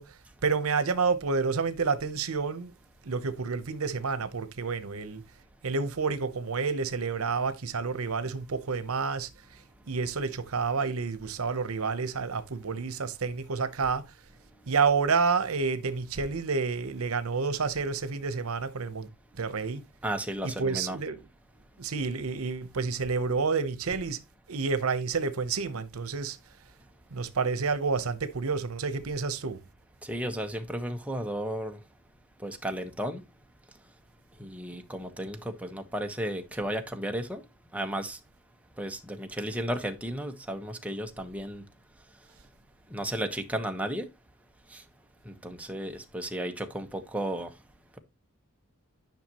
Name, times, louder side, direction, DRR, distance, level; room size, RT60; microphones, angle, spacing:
voice 1, 0.0-2.7 3.0-5.3 5.6-14.1 14.7-19.8 20.4-21.2 21.8-24.2 24.5-26.4 27.1-29.6, right 5 dB, 85° right, 0.8 m, -29 dB
voice 2, 20.0-21.0 30.0-31.8 32.4-33.2 34.4-37.4 37.7-38.2 38.8-41.6 42.9-44.1 44.7-44.8 45.2-47.5, right 1 dB, 5° right, 1.0 m, -34 dB
10.5 x 5.8 x 2.9 m
head